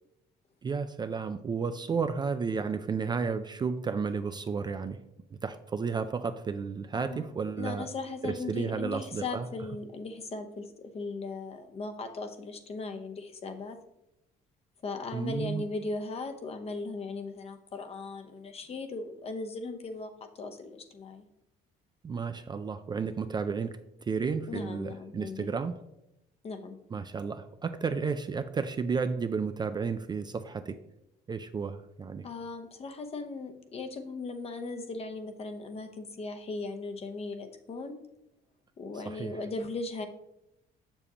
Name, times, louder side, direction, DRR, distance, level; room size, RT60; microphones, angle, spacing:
voice 1, 0.6-5.0 5.4-7.9 8.2-9.5 15.1-15.6 22.0-25.7 26.9-30.8 31.3-32.3 39.1-39.4, right 5 dB, 25° right, 10 dB, 0.4 m, -32 dB
voice 2, 6.9-7.2 7.6-13.8 14.8-21.2 24.5-25.5 26.4-26.8 32.2-38.0 38.8-40.0, left 3 dB, 35° left, 6 dB, 0.9 m, -38 dB
7.1 x 6.7 x 2.9 m, 0.85 s
cardioid pair, 110°, 17 cm